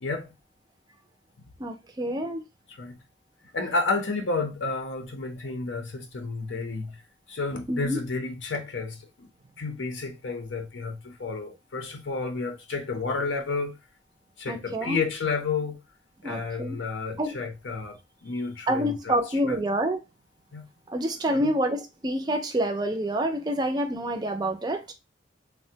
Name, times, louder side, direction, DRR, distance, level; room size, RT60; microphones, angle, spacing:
voice 1, 0.0-0.3 2.8-3.0 3.5-7.0 7.3-9.3 9.6-13.8 14.4-15.8 16.2-19.2 19.4-19.6 20.5-20.7 21.3-21.5, left 3 dB, 80° left, 0.6 m, -31 dB
voice 2, 1.6-2.4 7.7-8.1 14.5-15.0 16.2-16.8 17.2-17.4 18.7-20.0 20.9-24.9, right 1 dB, 20° right, 0.4 m, -27 dB
3.3 x 2.1 x 2.7 m
head